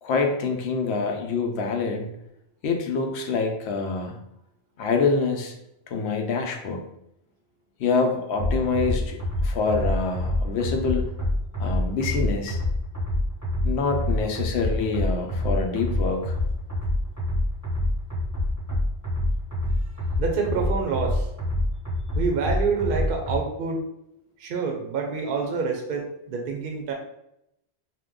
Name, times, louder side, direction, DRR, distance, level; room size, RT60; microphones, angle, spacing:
voice 1, 0.0-2.1 2.6-4.2 4.8-5.5 5.9-6.8 7.8-11.1 11.6-12.6 13.6-16.3, left 4 dB, 80° left, 3 dB, 0.8 m, -26 dB
sound 1, 8.4-23.4, left 1 dB, 15° left, 0.9 m, -26 dB
voice 2, 20.2-21.3 22.1-23.8 24.4-26.9, right 5 dB, 60° right, 2 dB, 0.6 m, -27 dB
2.8 x 2.1 x 3.6 m, 0.81 s
omnidirectional pair, 1.1 m